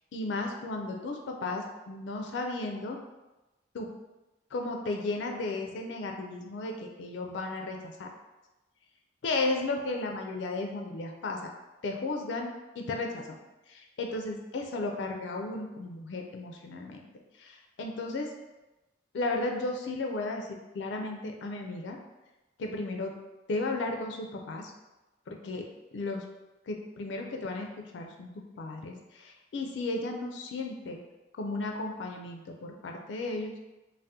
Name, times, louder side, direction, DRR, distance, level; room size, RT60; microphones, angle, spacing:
voice 1, 0.1-3.0 3.7-3.9 4.5-8.1 9.2-11.5 11.8-13.4 13.7-17.0 17.4-18.3 19.1-20.5 20.7-22.0 22.6-23.1 23.5-24.7 25.3-25.6 25.9-26.2 26.7-28.3 28.6-31.0 31.4-33.5, left 2 dB, 70° left, 2 dB, 0.4 m, -34 dB
2.7 x 2.1 x 3.4 m, 1.0 s
head